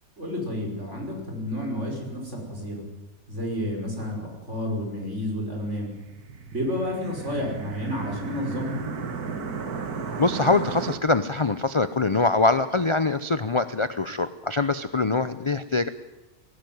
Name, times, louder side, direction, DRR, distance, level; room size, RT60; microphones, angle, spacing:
voice 1, 0.2-2.8 3.3-5.9 6.5-8.8, left 1 dB, 50° right, 2 dB, 6.0 m, -30 dB
sound 1, 5.8-11.0, right 5 dB, 80° right, 2.1 m, -34 dB
voice 2, 10.2-15.9, left 3 dB, 35° left, 12 dB, 0.5 m, -23 dB
19.0 x 17.0 x 9.4 m, 1.1 s
omnidirectional pair, 1.6 m